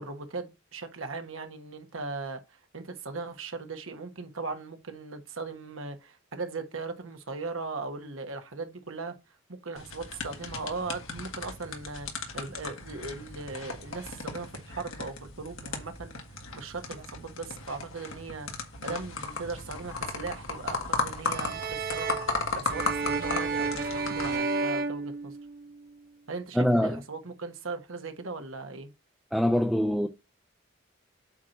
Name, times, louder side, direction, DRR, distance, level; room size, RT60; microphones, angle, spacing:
voice 1, 0.0-9.1 9.6-16.2 16.5-18.5 18.8-22.2 22.5-25.4 26.3-28.9, right 3 dB, 75° right, 1.3 m, -38 dB
sound 1, 9.8-24.4, left 3 dB, 75° left, 1.6 m, -36 dB
sound 2, 21.2-25.9, right 4 dB, 45° right, 1.0 m, -32 dB
voice 2, 26.5-27.0 29.3-30.1, equal, ahead, 0.5 m, -24 dB
8.3 x 2.9 x 5.9 m
head